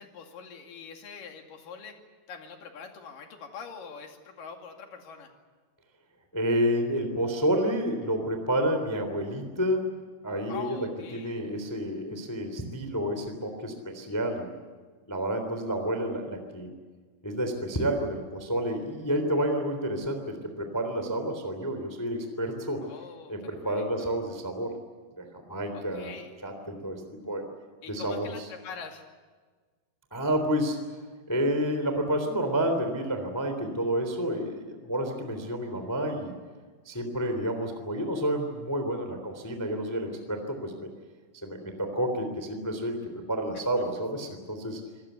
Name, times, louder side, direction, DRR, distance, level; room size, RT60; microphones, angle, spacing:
voice 1, 0.0-2.0 2.3-5.3 10.5-11.4 22.8-24.2 25.7-26.3 27.8-29.1 43.5-43.6, left 6 dB, 50° left, 3 dB, 3.5 m, -44 dB
voice 2, 6.3-10.9 11.2-14.5 15.1-16.7 17.2-22.8 23.3-24.7 25.2-26.1 26.4-27.4 27.9-28.3 30.1-30.8 31.3-36.3 36.8-40.9 41.4-43.0 43.3-44.8, equal, 5° left, 6 dB, 1.9 m, -29 dB
27.5 x 19.0 x 8.2 m, 1.4 s
omnidirectional pair, 5.7 m